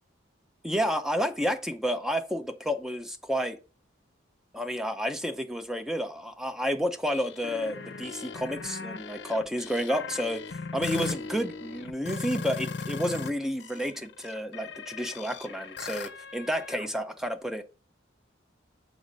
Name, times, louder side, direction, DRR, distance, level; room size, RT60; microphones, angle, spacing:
voice 1, 0.6-3.6 4.5-17.6, equal, ahead, 0.4 m, -30 dB
sound 1, 7.1-13.3 13.6-16.9, left 4 dB, 60° left, 0.6 m, -38 dB
6.7 x 4.0 x 5.2 m
head